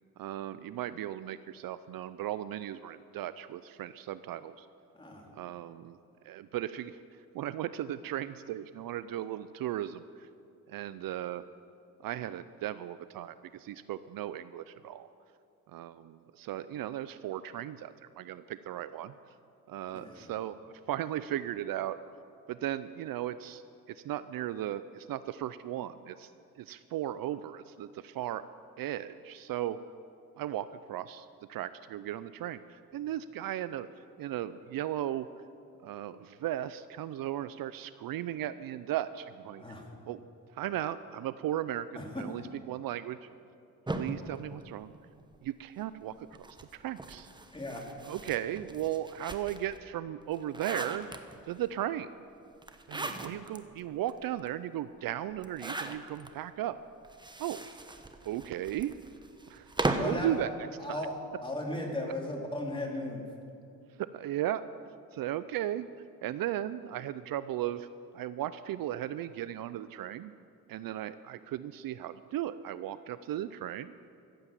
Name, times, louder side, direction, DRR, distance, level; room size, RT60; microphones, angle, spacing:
voice 1, 0.2-4.7 5.4-6.0 6.2-7.0 7.3-10.3 10.7-11.4 12.0-15.1 15.7-19.1 19.7-22.0 22.5-23.6 23.9-26.3 26.6-28.4 28.8-29.8 30.4-33.9 34.2-35.3 35.8-39.6 40.1-40.2 40.5-43.3 43.9-44.9 45.4-46.3 46.7-47.3 48.0-51.1 51.5-52.1 52.9-56.8 57.4-57.6 58.2-59.0 59.5-61.0 64.0-64.6 65.1-65.9 66.2-67.9 68.1-70.3 70.7-73.9, right 12 dB, 60° right, 14 dB, 0.5 m, -36 dB
voice 2, 4.9-5.2 19.9-20.3 39.6-39.8 41.9-42.2 47.5-47.8 53.0-53.1 59.9-60.4 60.8-61.1 61.4-63.2, left 1 dB, 15° left, -1 dB, 3.2 m, -36 dB
sound 1, 43.9-45.5 46.3-49.8 50.2-51.6 52.6-53.6 54.1-54.2 54.4-54.5 55.4-56.3 57.0-60.3, right 2 dB, 10° right, 1.0 m, -38 dB
15.5 x 8.1 x 7.4 m, 2.4 s
cardioid pair, 80°, 39 cm